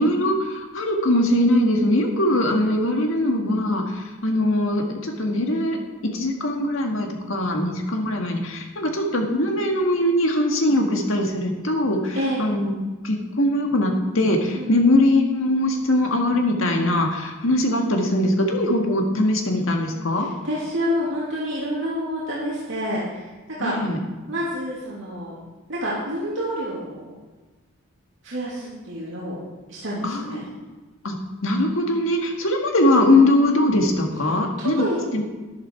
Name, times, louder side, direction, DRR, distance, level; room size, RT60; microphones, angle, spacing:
voice 1, 0.0-5.8 6.0-12.7 13.0-20.3 23.6-24.0 30.0-30.7 31.0-31.2 31.4-34.8 35.1-35.2, left 1 dB, 70° left, 2 dB, 1.8 m, -21 dB
voice 2, 12.1-12.6 14.5-14.8 20.1-23.8 24.3-25.3 25.7-27.1 28.2-29.4 29.7-30.4 34.6-35.0, equal, 60° right, -7 dB, 2.7 m, -28 dB
11.5 x 10.5 x 4.6 m, 1.2 s
head